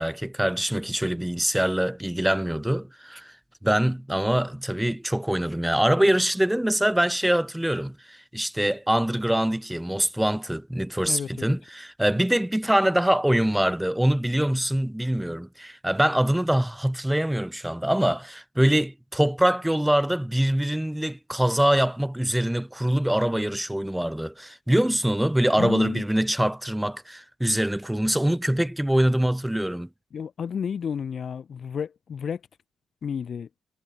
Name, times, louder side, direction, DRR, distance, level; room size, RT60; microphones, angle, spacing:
voice 1, 0.0-3.3 3.6-29.9, right 1 dB, 5° right, 0.7 m, -24 dB
voice 2, 11.1-11.6 25.6-26.1 30.1-32.4 33.0-33.5, left 7 dB, 55° left, 0.4 m, -31 dB
cardioid pair, 75°, 0 cm